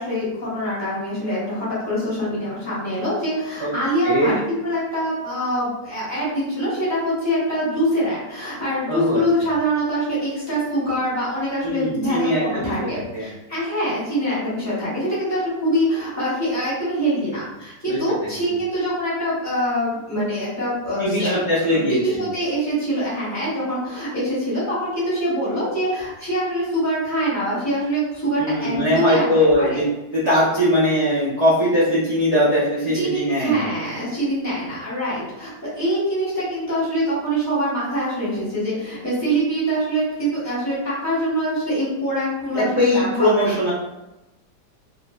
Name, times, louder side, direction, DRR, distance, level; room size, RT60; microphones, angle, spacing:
voice 1, 0.0-4.3 4.6-21.4 21.9-29.8 32.9-43.5, equal, 15° left, -10 dB, 0.6 m, -24 dB
voice 2, 4.0-4.4 8.9-9.2 11.6-12.9 13.1-13.3 17.9-18.3 21.0-22.0 28.4-29.8 30.1-33.7 42.5-43.7, equal, 45° right, -11 dB, 0.5 m, -20 dB
3.0 x 2.1 x 2.3 m, 0.96 s
omnidirectional pair, 1.9 m